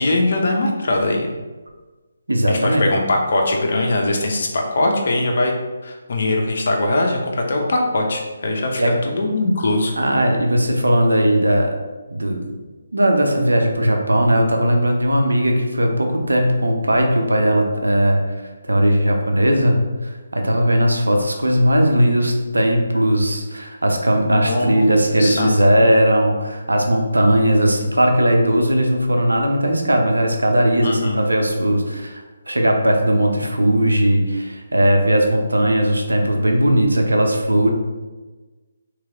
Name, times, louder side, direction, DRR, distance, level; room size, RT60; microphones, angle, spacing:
voice 1, 0.0-1.3 2.5-5.5 5.8-9.9 24.3-25.5 30.8-31.2, left 2 dB, 55° left, 1 dB, 0.8 m, -21 dB
voice 2, 2.3-2.8 8.8-8.9 10.0-11.7 12.1-12.4 12.9-18.2 18.7-37.7, equal, 85° right, 2 dB, 0.7 m, -18 dB
3.3 x 3.2 x 3.7 m, 1.2 s
figure-of-eight pair, 150°, 0 cm